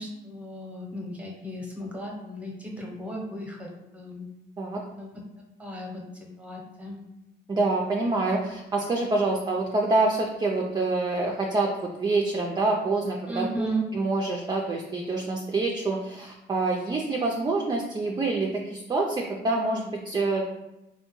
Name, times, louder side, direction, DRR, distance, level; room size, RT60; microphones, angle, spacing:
voice 1, 0.0-4.3 4.9-5.1 5.6-6.0 6.4-7.0 13.3-13.8, right 1 dB, 5° right, -1 dB, 0.8 m, -35 dB
voice 2, 7.5-13.7 13.9-20.5, right 3 dB, 20° right, 0 dB, 0.4 m, -26 dB
3.3 x 2.2 x 2.9 m, 0.93 s
cardioid pair, 90°, 20 cm